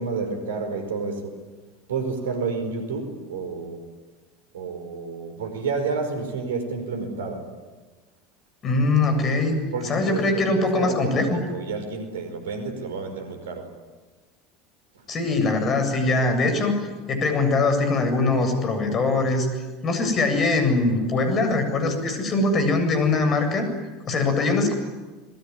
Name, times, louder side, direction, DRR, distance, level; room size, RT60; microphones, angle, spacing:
voice 1, 0.0-1.4 1.9-3.9 4.5-7.5 9.7-13.7 14.9-15.0, right 4 dB, 70° right, 7 dB, 5.0 m, -30 dB
voice 2, 8.6-9.6 9.8-11.4 15.1-16.8 17.1-19.5 19.8-23.7 24.1-24.7, left 3 dB, 35° left, 7 dB, 7.8 m, -22 dB
27.0 x 22.0 x 9.9 m, 1.3 s
figure-of-eight pair, 75°, 0 cm